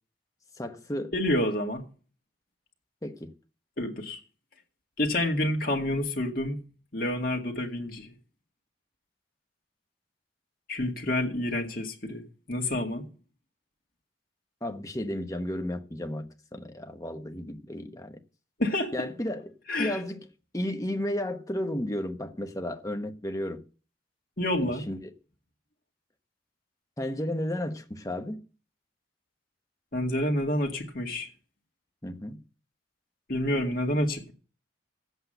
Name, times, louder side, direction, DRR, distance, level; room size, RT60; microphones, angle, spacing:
voice 1, 0.6-1.1 3.0-3.3 14.6-18.2 18.9-20.2 20.5-23.6 24.6-25.0 27.0-28.4 32.0-32.4, left 1 dB, 20° left, 1.0 m, -33 dB
voice 2, 1.1-1.8 3.8-4.2 5.0-6.6 6.9-8.1 10.7-12.2 12.5-13.0 18.6-18.9 19.7-20.0 24.4-24.9 29.9-31.3 33.3-34.3, left 1 dB, 50° left, 2.1 m, -28 dB
9.5 x 8.3 x 7.9 m
head